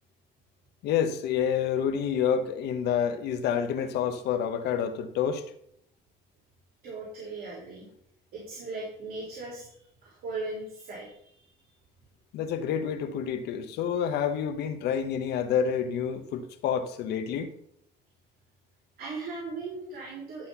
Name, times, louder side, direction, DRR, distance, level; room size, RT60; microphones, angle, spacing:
voice 1, 0.8-5.4 12.3-17.5, left 8 dB, 80° left, 1.1 m, -28 dB
voice 2, 6.8-7.9 8.3-9.7 10.0-11.3 19.0-20.5, right 3 dB, 65° right, 3.9 m, -38 dB
11.5 x 4.3 x 5.7 m
cardioid pair, 110°, 17 cm